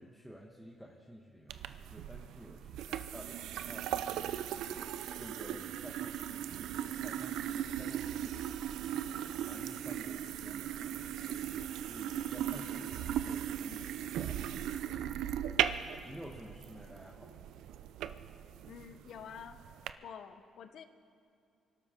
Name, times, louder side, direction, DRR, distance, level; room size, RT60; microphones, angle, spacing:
voice 1, 0.0-4.2 4.5-15.2 15.6-17.5, equal, ahead, -1 dB, 1.3 m, -52 dB
sound 1, 1.5-19.9, right 10 dB, 85° right, 0.5 m, -38 dB
voice 2, 18.7-19.6 20.0-20.8, left 8 dB, 70° left, 9 dB, 0.9 m, -48 dB
24.5 x 12.5 x 3.8 m, 2.6 s
cardioid pair, 90°, 0 cm